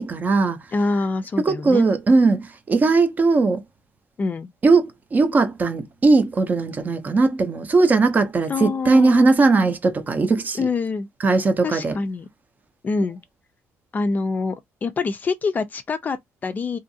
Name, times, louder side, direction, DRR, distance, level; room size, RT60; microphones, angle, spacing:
voice 1, 0.0-0.6 1.4-3.6 4.6-10.7 11.2-12.0, right 3 dB, 30° right, 0.6 m, -19 dB
voice 2, 0.7-1.9 4.2-4.5 8.5-9.3 10.6-11.1 11.6-12.3 12.8-13.2 13.9-16.8, left 4 dB, 30° left, 0.4 m, -25 dB
2.7 x 2.5 x 2.6 m
cardioid pair, 115°, 6 cm